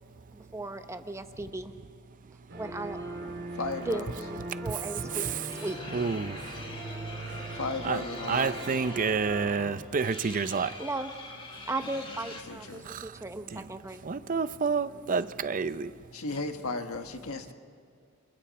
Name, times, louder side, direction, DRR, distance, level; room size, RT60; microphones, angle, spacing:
voice 1, 0.3-1.7 2.5-3.3 3.9-5.8 10.8-11.1 11.7-14.0, right 2 dB, 15° right, 0.9 m, -36 dB
sound 1, 2.5-9.7, right 2 dB, 55° right, 2.6 m, -40 dB
voice 2, 3.5-4.1 7.5-8.6 11.8-12.9 16.1-17.5, left 3 dB, 90° left, 1.5 m, -35 dB
sound 2, 5.5-12.4, left 3 dB, 25° left, 2.4 m, -45 dB
voice 3, 5.9-6.4 7.8-8.0 8.3-10.7 12.9-13.1 13.5-13.6 14.0-15.9, right 5 dB, 40° right, 0.5 m, -29 dB
29.5 x 27.5 x 4.3 m
head